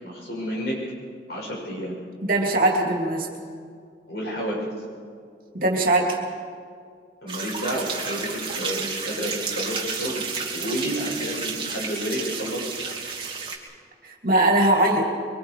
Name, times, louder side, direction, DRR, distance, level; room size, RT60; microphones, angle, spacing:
voice 1, 0.0-0.8 1.3-2.0 4.1-4.6 7.2-10.2 10.5-12.7, equal, 65° left, -3 dB, 7.2 m, -30 dB
voice 2, 2.2-3.3 5.5-6.2 14.0-15.1, right 1 dB, 50° right, 0 dB, 2.9 m, -21 dB
sound 1, 7.3-13.6, right 5 dB, 30° right, 2.7 m, -31 dB
25.5 x 24.0 x 5.0 m, 2.2 s
head